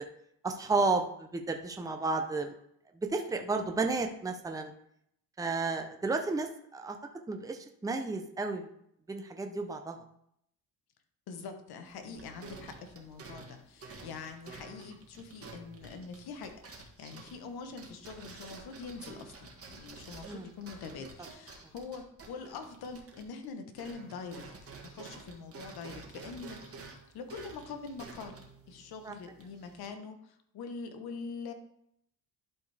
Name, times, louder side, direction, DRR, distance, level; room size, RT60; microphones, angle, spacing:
voice 1, 0.4-2.5 3.0-4.7 5.4-7.0 7.3-8.7 9.1-10.0 20.2-20.5 29.0-29.2, right 3 dB, 10° right, 4 dB, 0.7 m, -32 dB
voice 2, 11.3-24.4 24.8-31.5, left 4 dB, 70° left, 6 dB, 1.2 m, -44 dB
sound 1, 11.8-23.5 23.7-29.9, right 4 dB, 35° right, 1.7 m, -50 dB
11.5 x 4.4 x 3.4 m, 0.73 s
cardioid pair, 105°, 39 cm